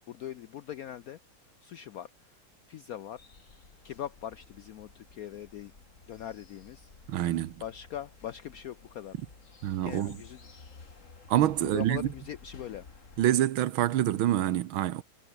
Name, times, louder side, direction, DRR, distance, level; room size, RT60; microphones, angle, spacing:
voice 1, 0.1-1.2 1.6-2.4 2.7-3.2 3.8-5.7 6.1-6.9 7.6-9.1 9.8-10.4 11.6-12.8, left 10 dB, 75° left, 0.8 m, -41 dB
sound 1, 3.2-13.3, left 4 dB, 40° left, 2.6 m, -53 dB
voice 2, 7.1-7.6 9.6-10.1 11.3-12.1 13.2-15.0, right 12 dB, 90° right, 1.8 m, -26 dB
omnidirectional pair, 2.2 m